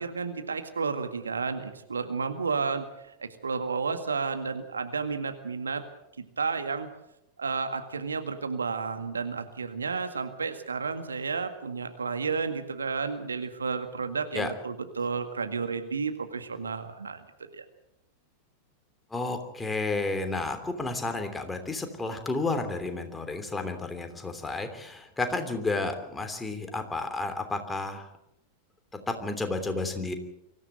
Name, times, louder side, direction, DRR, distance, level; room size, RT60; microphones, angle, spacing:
voice 1, 0.0-2.8 3.2-5.8 6.2-6.9 7.4-17.2 17.5-17.7, right 5 dB, 75° right, 8 dB, 1.9 m, -32 dB
voice 2, 19.1-28.1 29.1-30.2, left 3 dB, 10° left, 6 dB, 3.1 m, -31 dB
24.0 x 14.5 x 8.0 m, 0.83 s
figure-of-eight pair, 90°, 0 cm